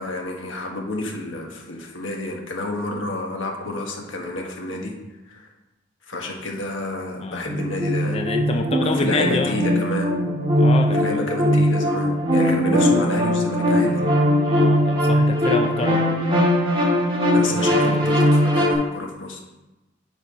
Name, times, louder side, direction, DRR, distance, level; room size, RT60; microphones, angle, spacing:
voice 1, 0.0-4.9 5.3-5.5 6.1-8.2 8.8-10.1 10.9-14.0 17.3-19.4, left 2 dB, 90° left, 1 dB, 1.5 m, -30 dB
sound 1, 7.5-18.7, equal, 30° right, 1.9 m, -20 dB
voice 2, 8.1-9.6 10.6-11.0 14.5-16.1, left 3 dB, 30° left, 5 dB, 0.4 m, -27 dB
8.1 x 4.3 x 5.4 m, 1.0 s
head